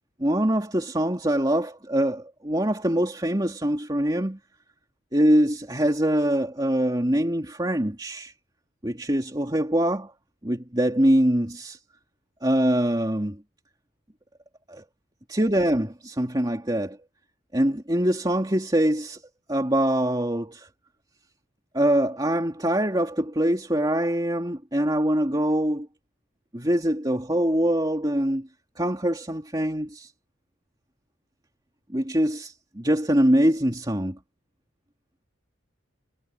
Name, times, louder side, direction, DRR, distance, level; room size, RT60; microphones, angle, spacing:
voice 1, 0.2-4.4 5.1-8.3 8.8-10.1 10.4-11.8 12.4-13.4 14.7-14.8 15.3-17.0 17.5-19.2 19.5-20.7 21.7-25.9 26.5-28.5 28.8-30.1 31.9-34.2, right 1 dB, 20° right, 3.0 m, -24 dB
head